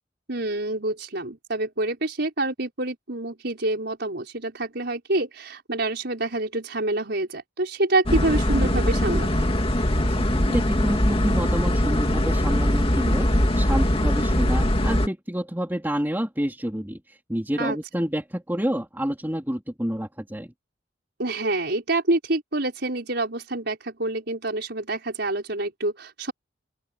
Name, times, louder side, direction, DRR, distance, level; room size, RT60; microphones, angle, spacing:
voice 1, 0.3-9.5 17.6-17.8 21.2-26.3, right 2 dB, 60° right, 5.6 m, -27 dB
sound 1, 8.1-15.1, left 1 dB, 30° left, 2.3 m, -21 dB
voice 2, 10.2-20.5, equal, 10° right, 3.3 m, -28 dB
open air
head